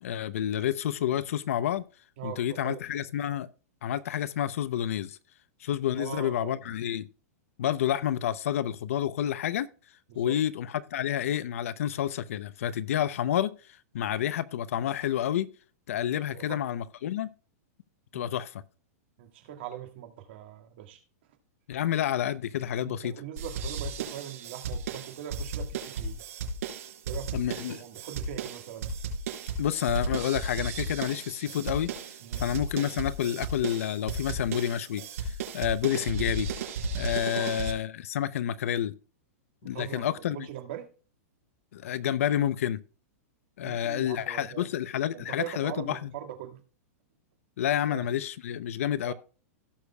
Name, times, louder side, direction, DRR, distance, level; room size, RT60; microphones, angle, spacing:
voice 1, 0.0-1.8 2.2-3.5 3.8-5.2 5.6-7.1 7.6-9.7 10.2-13.5 13.9-15.5 15.9-17.3 18.1-18.6 21.7-23.1 27.3-27.8 29.6-31.9 32.4-36.5 36.9-38.9 39.6-40.5 41.7-42.8 43.6-46.1 47.6-49.1, left 10 dB, 60° left, 0.6 m, -29 dB
voice 2, 2.2-2.8 6.0-6.6 10.1-10.4 16.3-16.6 18.1-18.3 19.2-21.0 22.8-26.2 27.1-28.9 32.2-32.5 37.3-37.5 39.6-40.9 43.6-44.7 45.1-46.6 47.9-48.0 49.0-49.1, right 11 dB, 40° right, 1.8 m, -41 dB
sound 1, 23.4-37.7, right 3 dB, 70° right, 4.4 m, -34 dB
17.0 x 6.5 x 2.3 m
supercardioid pair, 175°, 8 cm